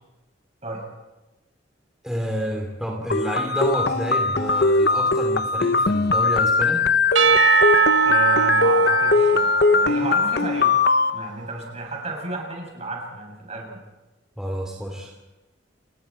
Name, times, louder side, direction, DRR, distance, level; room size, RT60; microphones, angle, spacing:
voice 1, 2.0-6.8 14.4-15.1, equal, 5° right, -1 dB, 2.8 m, -29 dB
sound 1, 3.1-11.1, left 4 dB, 60° left, 0.8 m, -20 dB
Percussion / Church bell, 7.2-11.3, right 6 dB, 80° right, 1.1 m, -21 dB
voice 2, 8.0-10.7 11.1-13.8, right 2 dB, 35° right, 0 dB, 7.3 m, -33 dB
29.5 x 21.5 x 4.5 m, 1.1 s
head